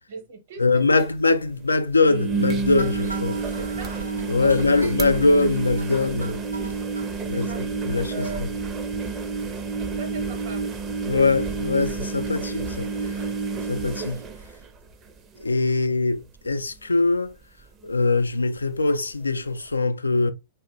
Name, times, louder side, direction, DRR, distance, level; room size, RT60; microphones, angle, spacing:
voice 1, 0.1-1.1 3.6-4.0 4.4-4.7 7.2-7.8 8.1-8.5 10.0-10.6, right 3 dB, 55° right, 0.9 m, -38 dB
voice 2, 0.6-3.4 4.3-6.8 7.3-7.5 7.9-8.5 11.1-12.9 13.7-14.2 15.4-17.3 17.8-20.3, left 3 dB, 80° left, 0.3 m, -22 dB
sound 1, 0.7-0.8 1.0-1.1 2.0-15.1 15.5-15.9 16.2-16.3 18.1-18.2, right 4 dB, 25° right, 0.5 m, -29 dB
sound 2, 2.8-7.1 7.5-7.6 7.9-8.0 8.2-8.4 8.7-8.8, right 3 dB, 85° right, 0.7 m, -40 dB
2.8 x 2.0 x 3.7 m
figure-of-eight pair, 95°, 0 cm